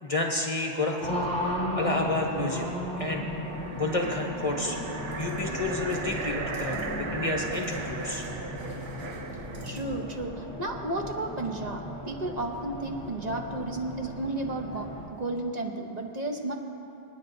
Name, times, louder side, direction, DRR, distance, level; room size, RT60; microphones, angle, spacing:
voice 1, 0.0-2.7 3.0-3.3 3.7-4.8 5.2-8.2, left 2 dB, 35° left, 0 dB, 1.0 m, -30 dB
Race car auto racing, 1.0-15.1, left 1 dB, 5° left, 2.9 m, -36 dB
sound 1, 3.4-9.8, right 4 dB, 70° right, 1.0 m, -38 dB
sound 2, 4.9-10.3, equal, 15° right, 3.0 m, -43 dB
voice 2, 9.6-16.5, right 2 dB, 40° right, 2 dB, 1.0 m, -33 dB
27.0 x 9.6 x 2.6 m, 2.8 s
omnidirectional pair, 1.1 m